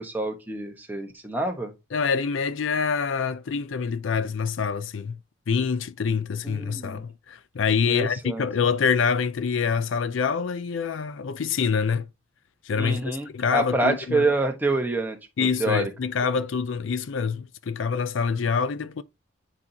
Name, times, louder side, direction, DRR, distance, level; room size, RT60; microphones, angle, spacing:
voice 1, 0.0-1.7 6.4-7.0 7.9-8.4 12.8-15.9, right 2 dB, 10° right, 1.2 m, -27 dB
voice 2, 1.9-5.2 5.5-12.1 12.6-14.3 15.4-19.0, left 6 dB, 75° left, 0.4 m, -26 dB
9.5 x 4.1 x 2.9 m
head